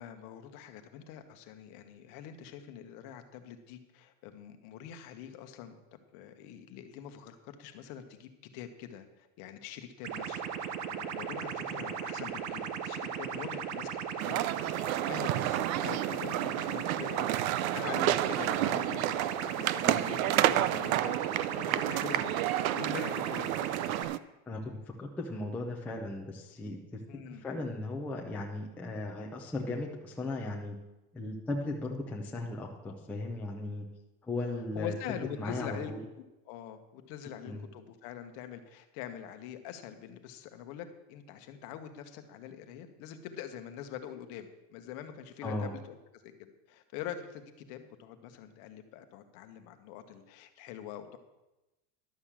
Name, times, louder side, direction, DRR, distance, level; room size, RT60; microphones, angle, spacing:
voice 1, 0.0-13.9 14.2-14.8 15.1-22.3 22.6-23.7 27.1-27.5 34.7-46.0 46.2-51.2, left 9 dB, 45° left, 7 dB, 1.2 m, -44 dB
sound 1, 10.0-24.0, right 8 dB, 35° right, 0.8 m, -37 dB
sound 2, 14.2-24.2, right 14 dB, 65° right, 0.6 m, -30 dB
voice 2, 24.5-27.0 27.4-30.8 31.1-33.9 34.2-36.0 37.4-37.7 45.4-45.7, left 2 dB, 5° left, -1 dB, 0.5 m, -37 dB
11.5 x 6.6 x 7.3 m, 0.99 s
supercardioid pair, 165°, 45 cm